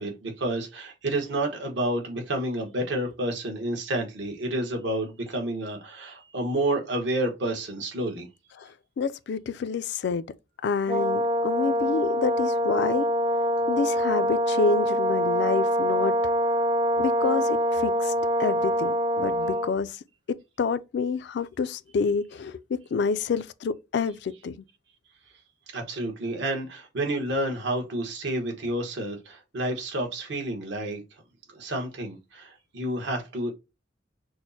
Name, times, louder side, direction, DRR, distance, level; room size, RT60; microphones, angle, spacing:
voice 1, 0.0-8.3 25.7-31.0 31.5-33.5, right 1 dB, 65° right, 1.1 m, -30 dB
voice 2, 9.0-10.3 10.6-13.1 13.7-16.2 17.0-18.1 18.4-20.0 20.3-24.6, left 5 dB, 65° left, 0.3 m, -28 dB
Brass instrument, 10.9-19.8, equal, 25° right, 0.3 m, -25 dB
6.1 x 2.1 x 2.7 m
head